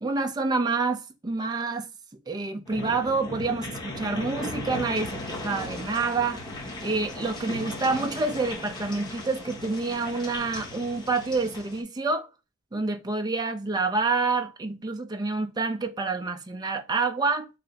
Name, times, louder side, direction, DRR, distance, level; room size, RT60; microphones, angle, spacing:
voice 1, 0.0-1.9 2.3-6.4 6.8-12.3 12.7-17.5, right 3 dB, 20° right, 0.4 m, -28 dB
sound 1, 2.7-11.8, left 1 dB, 20° left, 1.1 m, -37 dB
3.2 x 2.7 x 3.9 m
head